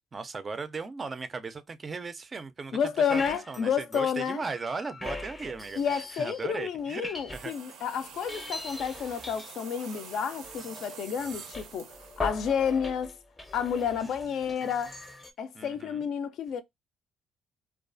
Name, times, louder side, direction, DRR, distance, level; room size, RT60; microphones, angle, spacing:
voice 1, 0.1-7.5 13.9-14.6 15.5-16.0, right 4 dB, 30° right, 0.3 m, -38 dB
voice 2, 2.7-4.4 5.8-13.1 13.5-14.9 15.4-16.6, left 7 dB, 70° left, 0.4 m, -30 dB
sound 1, 3.1-3.6 3.9-6.5 6.8-7.8 8.1-15.3, left 3 dB, 20° left, 0.5 m, -41 dB
sound 2, 7.3-13.1, right 7 dB, 90° right, 0.5 m, -47 dB
2.3 x 2.3 x 2.4 m
cardioid pair, 105°, 0 cm